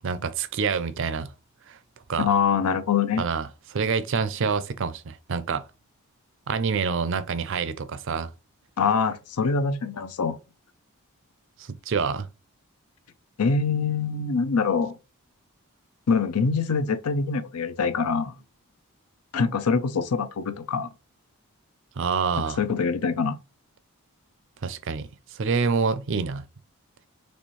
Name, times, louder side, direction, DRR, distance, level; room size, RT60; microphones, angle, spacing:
voice 1, 0.0-1.3 1.7-1.8 2.1-2.3 3.2-5.6 6.5-8.3 11.6-12.3 22.0-22.6 24.6-26.4, right 5 dB, 55° right, 0.4 m, -27 dB
voice 2, 2.2-3.2 8.8-10.4 13.4-15.0 16.1-18.3 19.3-20.9 22.6-23.4, left 5 dB, 90° left, 0.6 m, -24 dB
4.2 x 3.1 x 3.1 m
head